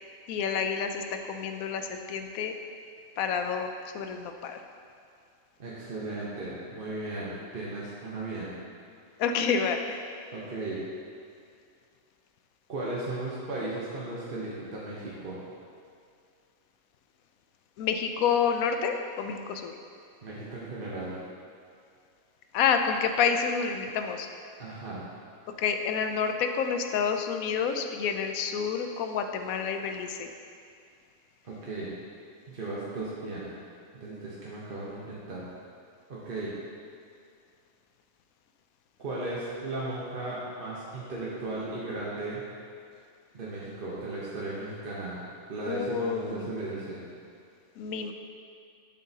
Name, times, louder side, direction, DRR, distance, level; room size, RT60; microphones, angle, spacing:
voice 1, 0.3-2.5 3.2-3.7 3.9-4.6 9.2-10.0 17.8-19.7 22.5-24.3 25.6-30.3 45.6-46.5 47.8-48.1, left 6 dB, 85° left, 6 dB, 1.0 m, -28 dB
voice 2, 5.6-8.5 10.3-10.8 12.7-15.4 20.2-21.2 24.6-25.0 31.4-31.9 32.5-33.5 33.9-35.5 36.1-36.6 39.0-42.4 43.3-45.2 45.5-47.0, right 2 dB, 45° right, -7 dB, 1.1 m, -36 dB
8.0 x 7.3 x 2.8 m, 2.4 s
omnidirectional pair, 1.5 m